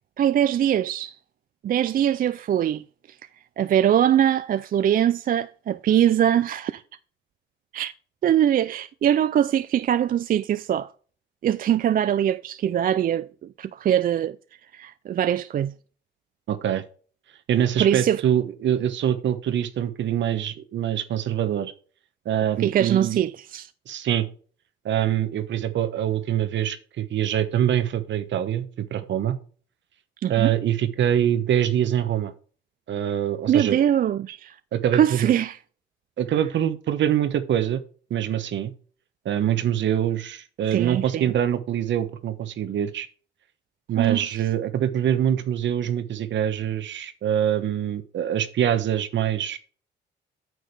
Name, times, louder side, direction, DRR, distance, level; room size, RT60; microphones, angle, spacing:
voice 1, 0.2-1.2 1.6-3.2 3.6-6.8 7.7-7.9 8.2-10.9 11.4-14.4 14.7-15.7 17.8-18.2 22.6-23.7 30.2-30.5 33.5-34.6 34.9-35.6 40.7-41.3 44.0-44.4, right 10 dB, 45° right, 0.4 m, -22 dB
voice 2, 16.5-16.8 17.5-21.7 22.2-23.2 23.9-24.3 24.8-29.4 30.3-32.3 32.9-33.8 34.7-35.3 36.2-37.8 38.1-38.7 39.2-43.1 43.9-49.6, right 10 dB, 65° right, 1.1 m, -24 dB
9.2 x 6.4 x 3.3 m
cardioid pair, 90°, 20 cm